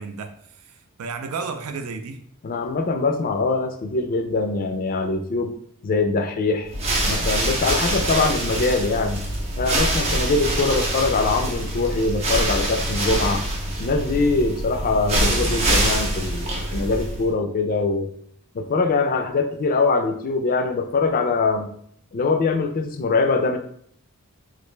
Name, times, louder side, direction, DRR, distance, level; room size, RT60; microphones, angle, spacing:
voice 1, 0.0-2.3, right 4 dB, 80° right, 0.4 m, -33 dB
voice 2, 2.4-5.5 5.8-6.7 7.0-9.2 9.6-13.4 13.8-18.1 18.5-21.7 22.1-23.6, left 3 dB, 40° left, 0.4 m, -23 dB
sound 1, 6.6-17.3, right 1 dB, 30° right, 0.6 m, -24 dB
3.1 x 2.5 x 3.2 m
head